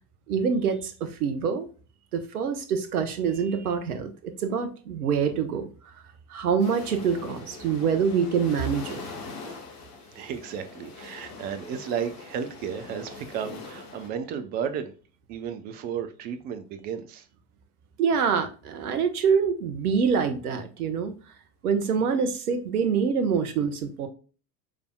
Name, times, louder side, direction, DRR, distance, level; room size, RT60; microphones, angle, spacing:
voice 1, 0.3-1.7 2.1-5.7 6.3-9.0 18.0-21.1 21.6-24.1, right 6 dB, 65° right, 1.0 m, -25 dB
sound 1, 6.6-14.1, left 3 dB, 35° left, 1.6 m, -42 dB
voice 2, 10.1-14.9 15.3-17.2, right 7 dB, 20° right, 0.4 m, -33 dB
6.2 x 3.4 x 2.2 m
figure-of-eight pair, 80°, 48 cm